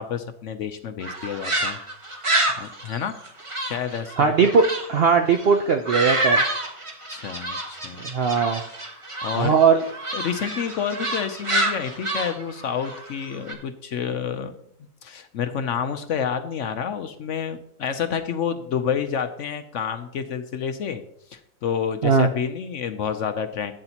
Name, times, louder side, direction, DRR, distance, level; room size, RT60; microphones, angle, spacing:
voice 1, 0.0-1.8 2.6-3.2 3.6-4.3 7.1-8.0 9.2-9.5 10.1-14.5 15.0-21.0 21.3-23.7, left 7 dB, 65° left, 8 dB, 0.8 m, -29 dB
sound 1, 1.0-4.9 5.2-13.5, right 1 dB, 20° right, 1.3 m, -28 dB
voice 2, 4.2-6.4 8.0-8.6 9.4-9.8 22.0-22.3, right 5 dB, 65° right, 5 dB, 0.6 m, -19 dB
12.0 x 8.8 x 2.9 m, 0.73 s
omnidirectional pair, 1.6 m